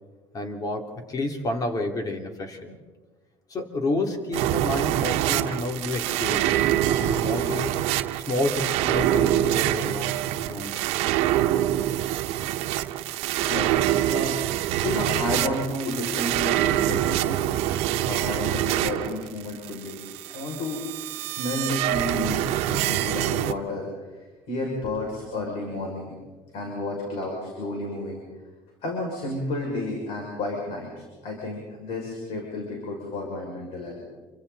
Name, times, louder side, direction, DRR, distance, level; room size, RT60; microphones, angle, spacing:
voice 1, 0.3-2.8 3.5-7.8 8.1-10.2 10.5-10.8, left 2 dB, 35° left, 4 dB, 3.3 m, -30 dB
sound 1, 4.3-23.5, right 13 dB, 85° right, 1.0 m, -25 dB
voice 2, 13.4-14.3 14.8-17.4 18.0-20.0 20.3-20.8 21.2-23.9 24.5-26.1 26.5-28.2 28.8-34.0, left 2 dB, 70° left, -1 dB, 6.4 m, -31 dB
29.0 x 24.5 x 4.2 m, 1.3 s
cardioid pair, 125°, 11 cm